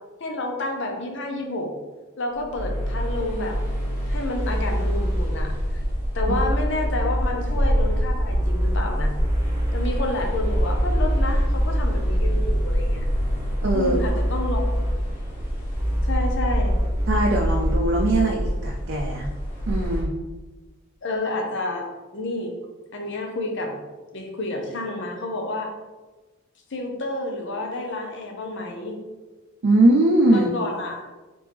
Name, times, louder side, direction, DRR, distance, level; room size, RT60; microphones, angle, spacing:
voice 1, 0.2-1.7 2.2-3.6 4.1-5.8 6.1-9.1 9.7-13.1 13.7-14.6 16.1-16.8 21.0-21.9 22.1-22.6 22.9-23.8 24.1-25.7 26.7-29.0 30.3-31.1, left 2 dB, 60° left, 2 dB, 0.7 m, -29 dB
sea shore of Hvide Sande Danmark, 2.4-20.0, equal, 40° left, 1.2 m, -27 dB
sound 1, 2.6-5.2 6.2-8.8 9.2-9.9 10.4-13.5 13.8-14.9 15.8-18.2, equal, 15° right, 1.1 m, -26 dB
voice 2, 13.6-13.9 17.1-19.3 19.7-20.1 29.6-30.5, right 1 dB, 55° right, 0 dB, 0.5 m, -20 dB
4.2 x 3.4 x 3.4 m, 1.2 s
head